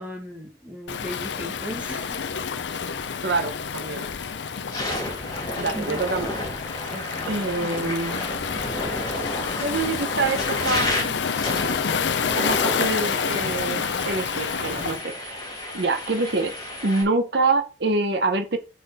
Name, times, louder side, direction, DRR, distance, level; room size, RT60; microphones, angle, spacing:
voice 1, 0.0-2.2 5.7-6.0 6.9-7.7, equal, 5° right, 2 dB, 1.6 m, -38 dB
Waves surf, 0.9-15.0, left 6 dB, 65° left, 0.6 m, -29 dB
voice 2, 3.2-4.1 5.6-6.3 7.3-8.5 9.6-11.2 12.4-15.3 15.7-16.5 16.8-18.6, right 3 dB, 55° right, 7 dB, 0.9 m, -26 dB
sound 1, 4.0-4.1 4.6-17.0, left 1 dB, 20° left, 2.9 m, -32 dB
6.5 x 5.8 x 4.2 m, 0.32 s
head